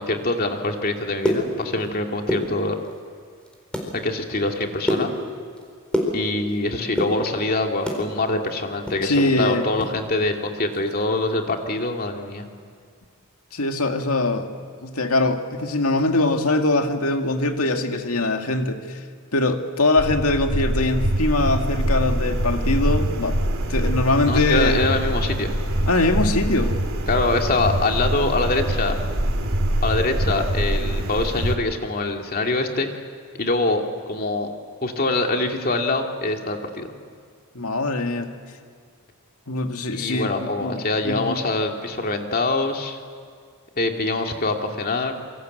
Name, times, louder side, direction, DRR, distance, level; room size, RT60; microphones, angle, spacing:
voice 1, 0.0-2.8 3.9-5.1 6.1-12.5 24.3-25.5 27.1-29.0 29.8-32.9 33.3-34.5 34.8-36.9 39.9-43.0 43.8-45.1, left 2 dB, 40° left, 3 dB, 2.4 m, -24 dB
sound 1, 1.0-3.0 3.4-3.9 4.3-6.6 6.9-8.1 8.4-10.0 10.2-10.3 10.7-10.9 11.3-11.5, equal, 5° left, 4.2 m, -27 dB
voice 2, 9.0-9.6 13.5-14.5 14.8-19.0 19.3-23.4 23.7-24.9 25.9-26.8 37.5-38.3 39.5-41.4, left 2 dB, 80° left, 5 dB, 2.1 m, -22 dB
sound 2, 20.0-31.6, right 1 dB, 70° right, 2.5 m, -24 dB
27.0 x 24.5 x 8.0 m, 2.1 s
head